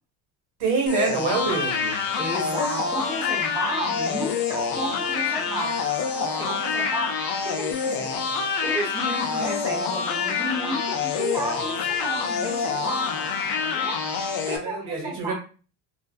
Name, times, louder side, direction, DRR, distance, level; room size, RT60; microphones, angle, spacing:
voice 1, 0.6-2.0 14.5-15.3, right 4 dB, 60° right, 1 dB, 1.1 m, -26 dB
sound 1, 0.9-14.6, left 5 dB, 50° left, 0.5 m, -26 dB
voice 2, 2.2-7.1 7.4-8.3 8.6-13.2 13.6-14.0 14.5-15.3, right 1 dB, 10° right, -4 dB, 0.5 m, -32 dB
2.4 x 2.4 x 2.3 m, 0.36 s
cardioid pair, 150°, 46 cm